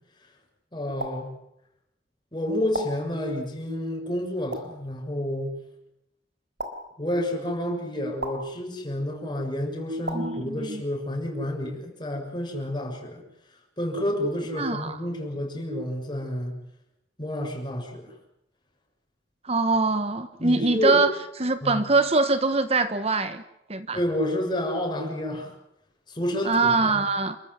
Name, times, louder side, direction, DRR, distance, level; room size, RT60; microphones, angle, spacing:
voice 1, 0.7-1.4 2.3-5.6 7.0-13.2 13.8-16.6 17.2-18.1 20.4-21.0 21.6-21.9 23.9-25.5 26.1-27.0, left 1 dB, 25° left, 2 dB, 6.8 m, -29 dB
sound 1, 1.0-1.1 2.7-2.9 4.5-4.6 6.6-6.7 8.2-8.3 10.0-10.2, right 1 dB, 75° right, 4.1 m, -31 dB
voice 2, 10.1-10.8 14.6-15.0 19.4-21.1 21.4-23.4 23.7-24.0 26.4-27.4, right 3 dB, 35° right, 10 dB, 1.3 m, -23 dB
29.5 x 14.5 x 9.7 m, 0.83 s
head